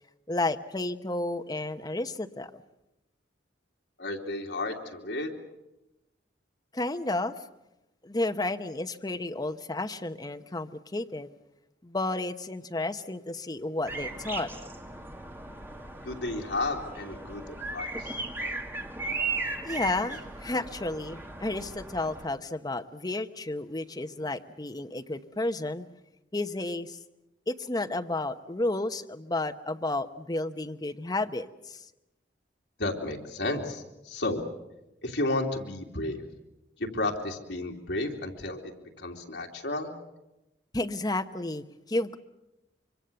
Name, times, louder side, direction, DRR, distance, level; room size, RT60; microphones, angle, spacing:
voice 1, 0.3-2.5 6.7-7.3 8.0-11.3 11.8-14.5 19.6-25.9 26.3-27.0 27.5-31.8 40.7-42.2, left 2 dB, 20° left, 8 dB, 0.9 m, -32 dB
voice 2, 4.0-5.3 16.0-18.2 32.8-34.4 35.0-36.2 36.8-39.9, left 2 dB, 75° left, 1 dB, 2.9 m, -32 dB
sound 1, 13.9-22.3, right 3 dB, 15° right, 2.1 m, -37 dB
25.5 x 24.0 x 6.9 m, 0.95 s
head